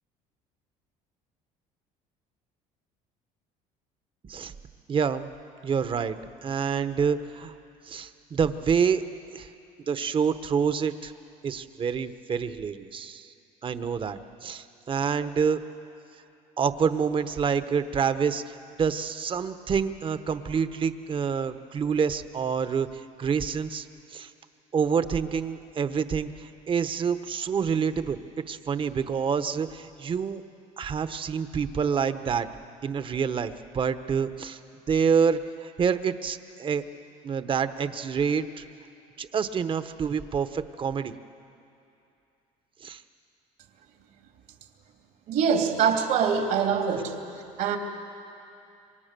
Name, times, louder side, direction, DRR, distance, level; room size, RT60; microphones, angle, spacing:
voice 1, 4.9-5.3 5.6-6.2 6.4-7.5 7.9-9.0 9.3-9.5 9.9-11.1 11.4-13.3 13.6-15.6 16.6-23.9 24.1-24.3 24.7-28.2 28.5-30.4 30.8-32.5 32.8-34.6 34.9-36.8 37.2-38.6 39.2-41.1 42.8-43.0, right 6 dB, 35° right, 11 dB, 1.1 m, -27 dB
voice 2, 45.3-47.1 47.6-47.8, right 7 dB, 70° right, 3 dB, 3.0 m, -24 dB
27.0 x 24.5 x 6.8 m, 2.7 s
cardioid pair, 105°, 15 cm